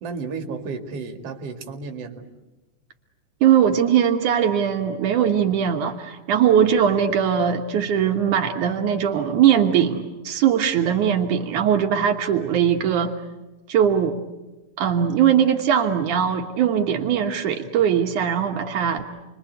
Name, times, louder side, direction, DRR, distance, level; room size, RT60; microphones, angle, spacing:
voice 1, 0.0-2.2 11.4-11.7, right 4 dB, 55° right, 5 dB, 3.1 m, -33 dB
voice 2, 3.4-13.1 13.7-14.2 14.8-19.0, right 8 dB, 80° right, 3 dB, 2.9 m, -20 dB
30.0 x 23.0 x 8.1 m, 1.1 s
omnidirectional pair, 3.5 m